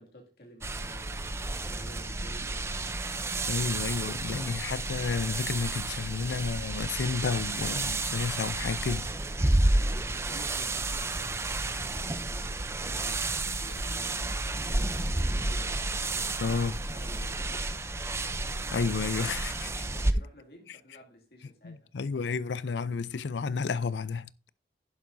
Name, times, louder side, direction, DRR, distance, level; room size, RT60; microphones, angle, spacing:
voice 1, 0.0-2.7 9.7-15.8 16.1-16.6 16.9-17.8 19.9-21.9, equal, 65° left, 2.3 m, -52 dB
sound 1, 0.6-20.1, right 2 dB, 15° right, 0.5 m, -31 dB
Water, 1.8-20.0, right 1 dB, 80° right, 2.4 m, -57 dB
voice 2, 3.5-9.7 16.4-16.8 18.7-19.9 21.6-24.3, left 5 dB, 90° left, 0.5 m, -32 dB
11.0 x 10.5 x 2.6 m
head